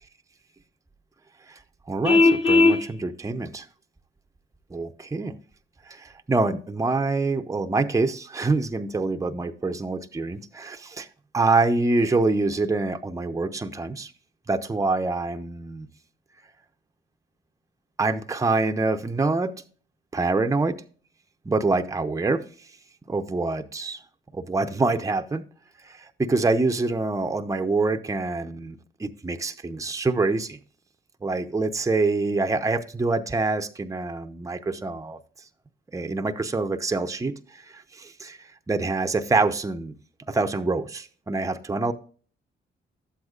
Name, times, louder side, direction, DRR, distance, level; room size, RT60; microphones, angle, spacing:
voice 1, 1.9-3.7 4.7-5.4 5.9-11.1 11.3-14.1 14.5-15.9 18.0-19.6 20.1-20.8 21.5-22.4 23.1-24.0 24.3-25.4 25.8-30.6 31.2-35.2 35.9-39.9 40.3-41.9, right 3 dB, 15° right, 6 dB, 0.6 m, -26 dB
Vehicle horn car horn honking, 2.0-2.8, left 3 dB, 25° left, 1.2 m, -17 dB
11.5 x 7.9 x 2.4 m, 0.42 s
cardioid pair, 70°, 21 cm